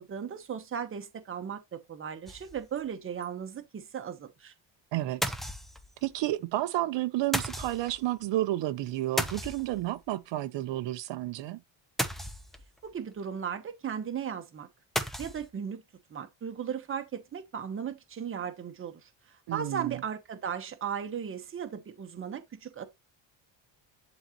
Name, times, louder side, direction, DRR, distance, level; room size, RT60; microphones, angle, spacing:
voice 1, 0.0-4.5 12.8-14.7 15.2-15.8 16.1-19.0 19.5-22.8, right 8 dB, 30° right, 0.9 m, -36 dB
sound 1, 2.3-2.8 3.2-3.3 3.5-3.6 5.2-6.1 7.3-8.0 9.2-10.0 12.0-12.8 15.0-15.5, equal, ahead, 0.5 m, -34 dB
voice 2, 6.0-11.6 19.5-20.0, right 15 dB, 70° right, 0.7 m, -31 dB
11.0 x 4.0 x 2.9 m
cardioid pair, 170°, 45 cm